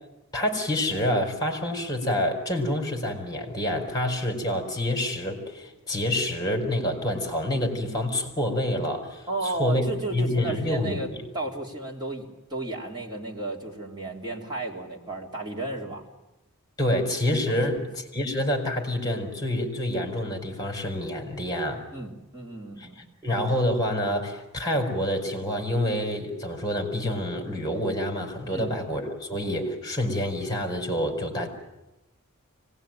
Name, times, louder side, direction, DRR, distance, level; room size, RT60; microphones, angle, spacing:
voice 1, 0.3-9.8 10.1-11.2 16.8-21.8 22.8-22.9 23.2-31.5, left 1 dB, 20° left, 3 dB, 4.6 m, -27 dB
voice 2, 9.3-16.1 17.5-17.9 21.9-23.0 28.5-28.7, right 2 dB, 20° right, -3 dB, 3.3 m, -34 dB
25.0 x 19.0 x 9.1 m, 0.99 s
head